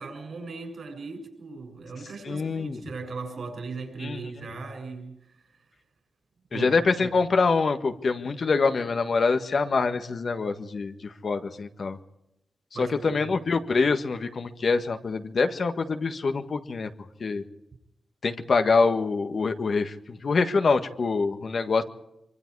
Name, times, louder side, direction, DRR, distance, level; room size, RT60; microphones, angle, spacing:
voice 1, 0.0-5.7 6.5-6.8 12.7-13.2, right 4 dB, 60° right, 6 dB, 7.1 m, -38 dB
voice 2, 2.2-2.8 4.0-4.2 6.5-12.0 12.8-16.9 17.2-17.4 18.2-21.8, left 4 dB, 55° left, 7 dB, 1.6 m, -25 dB
25.0 x 24.5 x 4.8 m, 0.85 s
wide cardioid pair, 100°, 0 cm